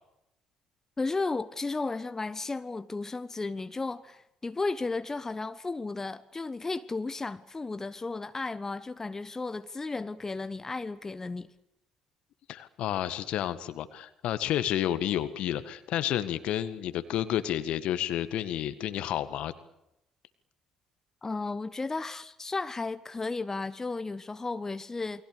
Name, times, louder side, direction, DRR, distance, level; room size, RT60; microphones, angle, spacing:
voice 1, 1.0-11.5 21.2-25.3, left 3 dB, 25° left, 1.2 m, -34 dB
voice 2, 12.5-19.5, left 11 dB, 60° left, 1.7 m, -30 dB
28.5 x 23.5 x 6.9 m
figure-of-eight pair, 50°, 2 cm